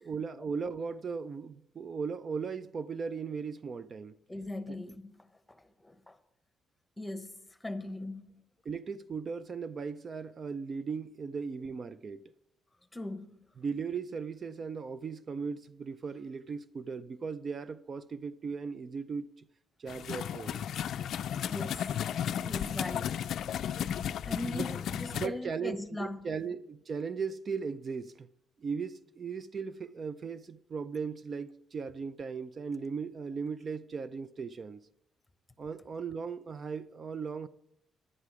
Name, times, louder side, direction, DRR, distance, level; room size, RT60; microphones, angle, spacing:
voice 1, 0.0-4.2 4.7-4.8 8.6-12.2 13.6-19.5 19.8-20.6 24.3-24.7 25.1-28.3 28.6-34.8 35.6-37.5, right 5 dB, 45° right, 0.4 m, -37 dB
voice 2, 4.3-6.2 7.0-8.4 12.9-13.4 21.5-21.9 22.4-23.3 24.2-26.3, left 1 dB, 10° left, 1.0 m, -40 dB
sound 1, 19.9-25.3, left 9 dB, 70° left, 0.4 m, -34 dB
11.0 x 10.0 x 4.8 m
cardioid pair, 90°, 0 cm